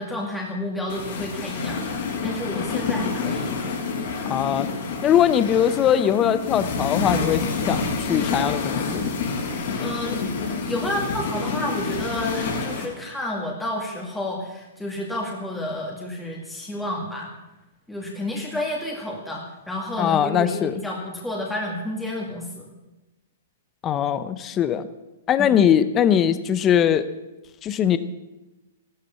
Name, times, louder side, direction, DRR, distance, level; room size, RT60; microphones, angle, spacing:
voice 1, 0.0-3.5 9.8-17.3 17.9-22.7 25.4-25.7, left 1 dB, 5° left, -2 dB, 2.2 m, -30 dB
sound 1, 0.9-12.9, left 4 dB, 55° left, 5.3 m, -28 dB
voice 2, 4.3-4.7 5.0-9.1 20.0-20.7 23.8-24.9 25.3-27.1 27.6-28.0, left 9 dB, 20° left, 12 dB, 0.8 m, -21 dB
14.5 x 12.5 x 7.1 m, 1.0 s
hypercardioid pair, 150°, 0 cm